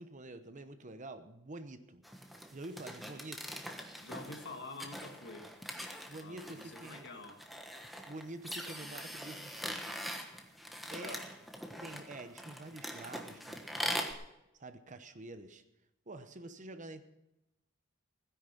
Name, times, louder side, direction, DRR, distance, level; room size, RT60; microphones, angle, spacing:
voice 1, 0.0-2.0 2.5-3.6 6.1-7.1 8.1-9.9 10.9-11.2 11.8-14.2 14.6-15.6 16.1-17.0, right 2 dB, 40° right, 10 dB, 0.9 m, -47 dB
sound 1, 2.0-14.1, equal, ahead, 1.3 m, -43 dB
voice 2, 4.0-5.5 6.2-7.4 11.0-11.3, left 3 dB, 55° left, 5 dB, 1.8 m, -47 dB
16.5 x 10.5 x 5.9 m, 0.89 s
head